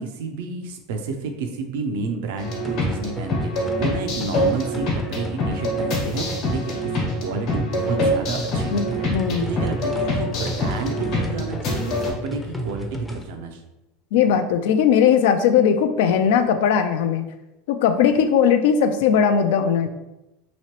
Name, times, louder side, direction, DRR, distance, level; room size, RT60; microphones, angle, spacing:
voice 1, 0.0-9.1 9.4-13.6, right 4 dB, 75° right, 5 dB, 0.5 m, -30 dB
sound 1, 2.4-12.1, equal, 60° left, 1.1 m, -25 dB
sound 2, 2.4-13.3, equal, 10° left, 0.5 m, -34 dB
voice 2, 8.7-9.4 14.1-17.3 17.7-19.9, left 7 dB, 75° left, 8 dB, 0.3 m, -19 dB
3.0 x 2.8 x 2.9 m, 0.96 s
supercardioid pair, 105°, 0 cm